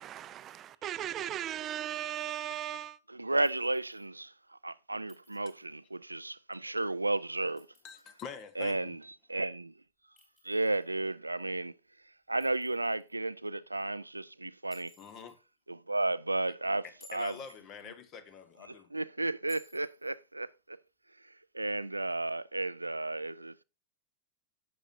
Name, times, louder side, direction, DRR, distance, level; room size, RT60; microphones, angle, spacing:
voice 1, 0.0-3.0, right 11 dB, 30° right, 0.5 m, -37 dB
voice 2, 3.1-7.7 8.6-9.0 9.3-9.7 10.4-11.7 12.3-14.9 15.7-16.8 17.1-17.3 18.9-20.8 21.2-23.6, right 2 dB, 85° right, 0.3 m, -33 dB
Chink clink, 3.4-4.1 5.1-5.7 7.4-8.3 10.2-11.0 12.4-13.1 14.7-15.4 16.8-17.6 19.5-20.1, left 2 dB, 15° left, 5.6 m, -60 dB
voice 3, 7.8-9.0 15.0-15.4 16.8-18.9, left 6 dB, 35° left, 1.2 m, -46 dB
10.5 x 7.9 x 2.6 m
figure-of-eight pair, 90°, 0 cm